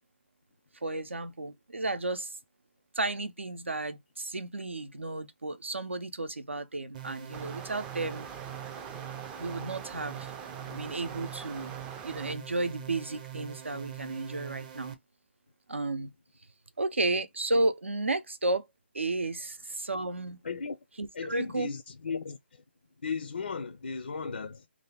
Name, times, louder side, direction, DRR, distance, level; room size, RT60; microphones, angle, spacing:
voice 1, 0.8-2.3 2.9-8.3 9.4-10.3 10.7-11.7 12.0-15.0 15.7-16.1 16.8-18.7 18.9-20.4 21.0-21.7, right 2 dB, 85° right, 0.6 m, -33 dB
sound 1, 6.9-14.9, right 12 dB, 40° right, 0.7 m, -44 dB
sound 2, 7.3-12.3, right 6 dB, 15° right, 0.3 m, -44 dB
voice 2, 20.4-20.8 21.1-22.4 23.0-24.7, left 5 dB, 65° left, 0.4 m, -35 dB
2.7 x 2.5 x 3.3 m
figure-of-eight pair, 145°, 6 cm